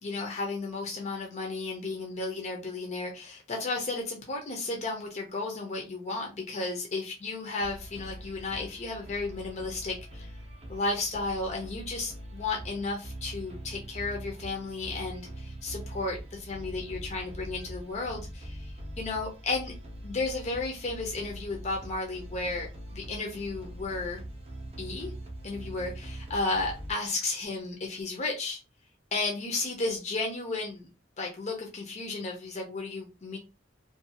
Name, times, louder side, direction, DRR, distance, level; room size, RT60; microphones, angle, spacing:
voice 1, 0.0-10.4 10.7-19.7 20.0-22.7 22.9-24.2 24.8-25.1 25.4-28.6 29.1-30.9 31.2-33.4, left 3 dB, 35° left, 1 dB, 0.5 m, -33 dB
sound 1, 7.6-26.9, right 1 dB, 30° right, 0.6 m, -42 dB
2.5 x 2.2 x 2.6 m, 0.29 s
head